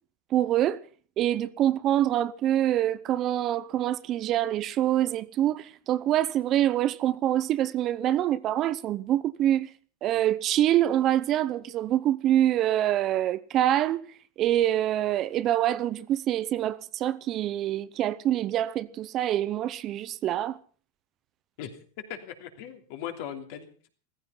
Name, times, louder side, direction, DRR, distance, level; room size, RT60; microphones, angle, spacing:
voice 1, 0.3-0.8 1.2-9.7 10.0-14.0 14.4-20.6, right 12 dB, 35° right, 0.7 m, -25 dB
voice 2, 22.1-23.9, left 9 dB, 60° left, 3.0 m, -39 dB
15.5 x 15.0 x 5.7 m
supercardioid pair, 140°, 0 cm